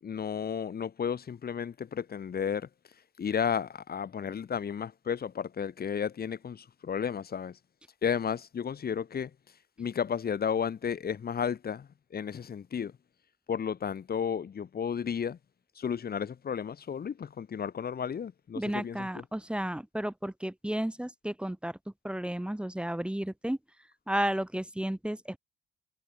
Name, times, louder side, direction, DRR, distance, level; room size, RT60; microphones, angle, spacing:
voice 1, 0.0-2.7 3.2-7.6 8.0-9.3 9.8-12.9 13.5-15.4 15.8-19.2, left 7 dB, 50° left, 7.9 m, -33 dB
voice 2, 18.5-21.8 22.0-23.6 24.1-25.4, right 1 dB, 5° right, 4.4 m, -32 dB
cardioid pair, 90°, 20 cm